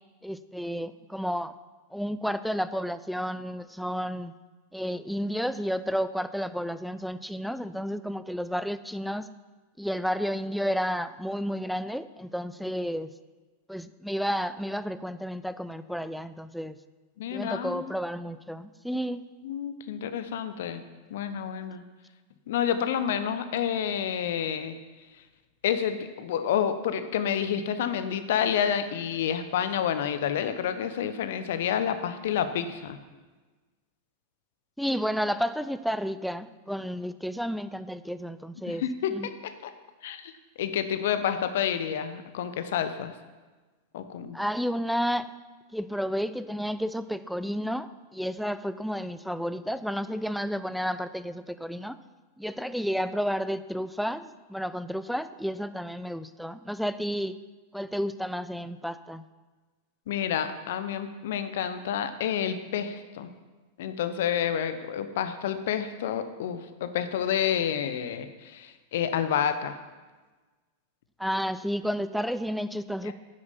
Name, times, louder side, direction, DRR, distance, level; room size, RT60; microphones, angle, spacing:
voice 1, 0.2-1.5 1.9-4.3 4.7-9.3 9.8-13.1 13.7-16.8 17.3-19.3 34.8-38.8 39.1-39.3 44.3-45.3 45.7-52.0 52.4-57.4 57.7-59.2 71.2-73.1, equal, ahead, 13 dB, 0.5 m, -31 dB
voice 2, 17.2-17.9 19.4-20.8 21.1-21.8 22.5-24.8 25.6-33.0 38.6-39.7 40.0-40.3 40.6-43.1 43.9-44.4 60.1-63.3 63.8-69.8 73.0-73.1, left 9 dB, 55° left, 10 dB, 0.9 m, -29 dB
10.5 x 9.6 x 5.7 m, 1.3 s
figure-of-eight pair, 90°, 0 cm